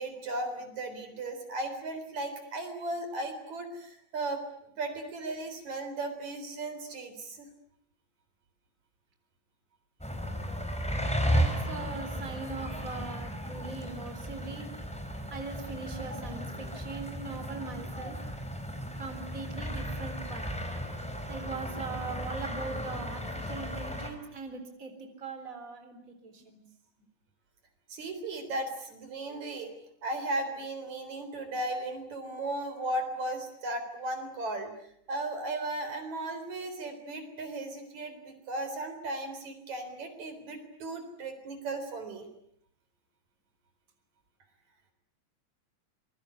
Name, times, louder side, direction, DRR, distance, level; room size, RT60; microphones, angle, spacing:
voice 1, 0.0-4.5 4.8-7.5 16.1-16.4 27.9-29.7 30.0-34.7 35.1-42.3, right 2 dB, 70° right, 8 dB, 5.2 m, -36 dB
sound 1, 10.0-24.1, equal, ahead, 4.3 m, -34 dB
voice 2, 11.2-14.7 15.3-18.2 19.0-20.7 21.3-24.9 25.2-26.6, right 4 dB, 25° right, 7 dB, 4.1 m, -41 dB
26.5 x 22.5 x 9.7 m, 0.69 s
omnidirectional pair, 3.3 m